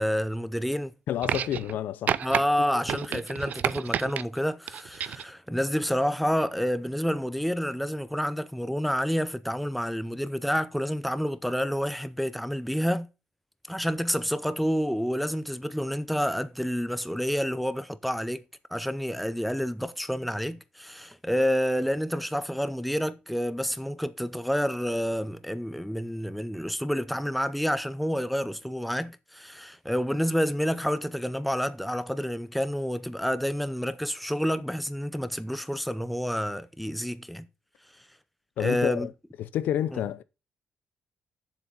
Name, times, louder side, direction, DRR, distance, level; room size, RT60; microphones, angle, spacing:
voice 1, 0.0-0.9 2.2-13.1 13.7-18.4 18.7-37.5 38.6-39.1 39.9-40.0, equal, ahead, 0.7 m, -29 dB
voice 2, 1.1-2.2 2.9-3.2 38.6-39.1 39.4-40.2, left 11 dB, 90° left, 0.6 m, -29 dB
sound 1, 1.2-1.8 2.1-2.4 2.9-4.2 4.7-5.3 6.3-6.4, right 9 dB, 60° right, 0.5 m, -30 dB
7.5 x 7.0 x 5.4 m
cardioid pair, 120°, 3 cm